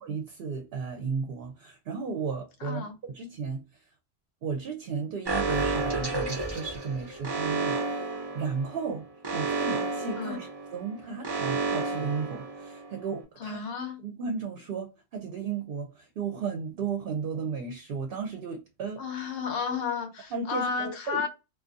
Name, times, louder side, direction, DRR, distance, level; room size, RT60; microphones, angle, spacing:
voice 1, 0.0-3.6 4.4-9.1 9.3-13.6 14.0-19.0 20.3-21.3, right 5 dB, 65° right, 0.7 m, -34 dB
voice 2, 2.6-2.9 10.2-10.4 13.4-14.0 19.0-21.3, left 5 dB, 65° left, 0.9 m, -32 dB
Alarm, 5.2-13.0, right 3 dB, 30° right, 0.5 m, -31 dB
2.5 x 2.3 x 2.5 m
omnidirectional pair, 1.1 m